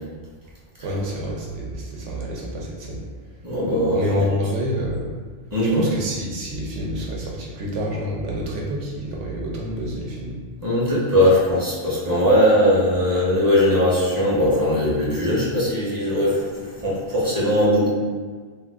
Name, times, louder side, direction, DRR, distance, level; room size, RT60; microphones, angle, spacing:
voice 1, 0.8-3.0 3.9-5.1 5.7-10.3, equal, 80° right, -2 dB, 1.0 m, -28 dB
voice 2, 3.4-4.0 5.5-5.8 10.6-17.9, equal, 20° right, -8 dB, 0.6 m, -19 dB
2.4 x 2.4 x 3.5 m, 1.5 s
omnidirectional pair, 1.2 m